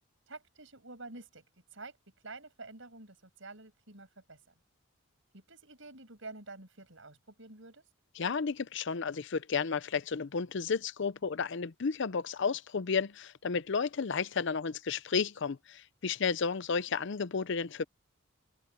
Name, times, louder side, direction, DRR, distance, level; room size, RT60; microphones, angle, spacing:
voice 1, 0.3-1.4 1.7-2.0 2.2-4.5 5.3-7.8, right 3 dB, 65° right, 6.6 m, -49 dB
voice 2, 8.2-17.8, left 5 dB, 60° left, 0.6 m, -32 dB
head